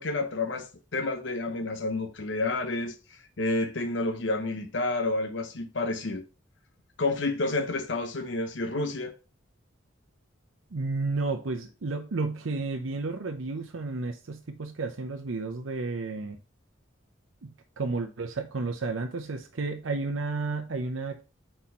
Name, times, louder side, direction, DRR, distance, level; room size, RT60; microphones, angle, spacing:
voice 1, 0.0-6.2 7.0-9.1, left 2 dB, 65° left, 0.9 m, -30 dB
voice 2, 10.7-16.4 17.4-21.2, right 3 dB, 90° right, 0.7 m, -32 dB
4.4 x 4.2 x 5.5 m
head